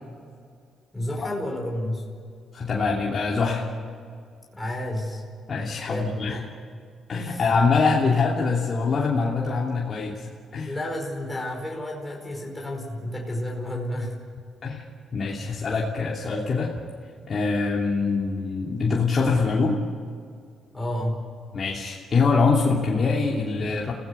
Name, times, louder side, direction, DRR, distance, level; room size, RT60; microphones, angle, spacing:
voice 1, 0.9-2.1 4.5-5.2 5.9-6.4 7.1-7.5 10.7-14.2 15.4-15.7 20.7-21.2, left 1 dB, 10° left, -1 dB, 5.1 m, -31 dB
voice 2, 2.5-3.7 5.5-6.4 7.1-10.3 10.5-10.7 14.6-14.8 15.1-16.7 17.3-19.8 21.5-23.9, left 4 dB, 45° left, -4 dB, 3.0 m, -24 dB
30.0 x 17.5 x 7.2 m, 2.3 s
cardioid pair, 90°, 0 cm